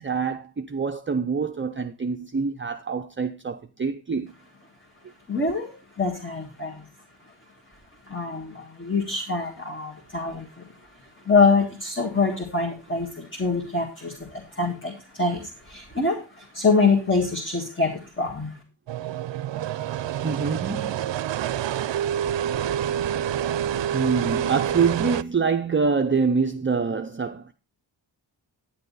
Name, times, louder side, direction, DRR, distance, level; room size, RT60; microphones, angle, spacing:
voice 1, 0.0-4.3 20.2-20.9 23.9-27.5, right 5 dB, 25° right, 0.5 m, -25 dB
voice 2, 5.3-6.9 8.1-10.7 11.2-18.6, left 4 dB, 25° left, 1.8 m, -25 dB
sound 1, 18.9-25.2, right 10 dB, 75° right, 0.5 m, -27 dB
10.5 x 9.9 x 4.0 m
wide cardioid pair, 140°, 44 cm